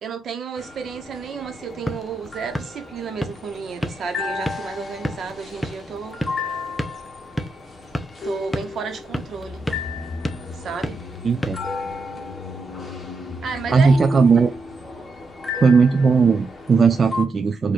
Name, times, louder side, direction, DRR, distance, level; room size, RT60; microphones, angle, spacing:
voice 1, 0.0-6.2 8.2-9.6 10.5-11.0 13.4-14.0, right 6 dB, 60° right, 1.1 m, -32 dB
sound 1, 0.6-17.2, left 4 dB, 30° left, 1.3 m, -34 dB
sound 2, 1.5-12.3, equal, 10° left, 0.7 m, -33 dB
sound 3, 9.2-15.6 15.9-16.0, left 4 dB, 55° left, 0.7 m, -38 dB
voice 2, 11.2-11.6 13.7-14.5 15.6-17.7, right 5 dB, 40° right, 0.4 m, -17 dB
4.6 x 2.6 x 4.2 m
cardioid pair, 90°, 0 cm